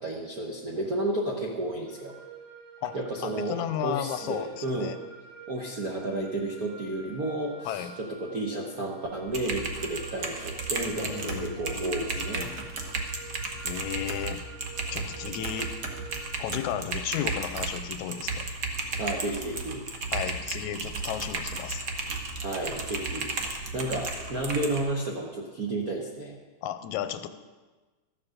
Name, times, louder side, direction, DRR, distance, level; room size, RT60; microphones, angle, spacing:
voice 1, 0.0-2.1 2.9-4.9 5.5-12.5 19.0-19.8 22.4-23.3 23.7-26.4, right 2 dB, 80° right, -1 dB, 0.8 m, -32 dB
sound 1, 1.9-16.3, right 6 dB, 10° right, 2.7 m, -48 dB
voice 2, 3.2-5.0 7.7-7.9 10.9-12.7 13.6-14.4 14.9-15.7 16.4-18.5 20.1-21.8 26.6-27.3, left 10 dB, 90° left, 10 dB, 2.0 m, -34 dB
Typing, 9.3-24.8, right 3 dB, 55° right, 1.1 m, -34 dB
13.5 x 7.4 x 6.5 m, 1.3 s
omnidirectional pair, 3.4 m